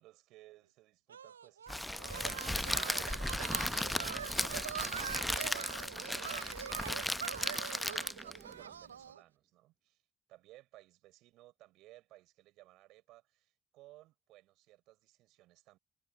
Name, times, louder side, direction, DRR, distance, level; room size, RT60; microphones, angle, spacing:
voice 1, 0.0-10.0 10.3-15.8, right 17 dB, 70° right, 5.2 m, -60 dB
sound 1, 1.1-9.2, right 8 dB, 90° right, 0.4 m, -43 dB
Crackle, 1.7-8.4, left 1 dB, 5° left, 0.7 m, -36 dB
sound 2, 2.6-9.2, right 5 dB, 40° right, 7.6 m, -57 dB
hypercardioid pair, 45°, 0 cm